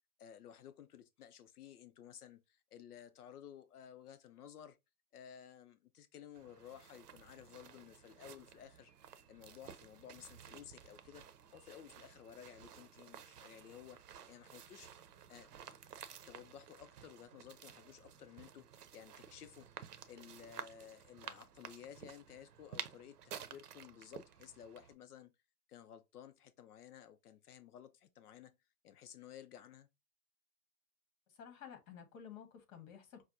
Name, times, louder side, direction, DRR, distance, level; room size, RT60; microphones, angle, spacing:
voice 1, 0.2-4.8 5.1-8.9 9.3-11.2 11.5-14.0 14.3-14.9 15.3-15.6 16.2-18.7 18.9-19.7 20.1-25.3 25.7-28.6 28.8-29.9, left 9 dB, 80° left, 0.6 m, -55 dB
sound 1, 6.3-24.9, right 8 dB, 85° right, 0.7 m, -53 dB
voice 2, 31.3-33.2, left 8 dB, 60° left, 1.4 m, -53 dB
5.8 x 2.2 x 2.5 m
hypercardioid pair, 110°, 46 cm